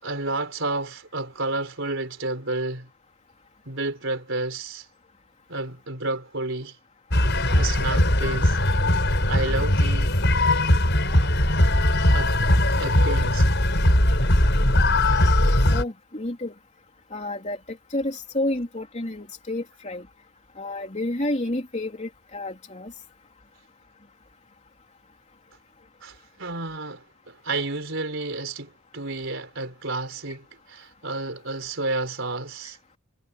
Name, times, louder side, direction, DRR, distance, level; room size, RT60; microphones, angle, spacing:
voice 1, 0.0-2.9 3.6-4.9 5.5-6.8 7.5-8.6 9.3-10.1 12.1-12.3 12.7-13.5 26.0-32.8, right 2 dB, 60° right, 5.0 m, -31 dB
sound 1, 7.1-15.8, left 1 dB, 55° left, 6.5 m, -20 dB
voice 2, 15.7-16.5 17.1-17.6 17.9-20.0 20.6-22.9, left 1 dB, 30° left, 3.2 m, -30 dB
head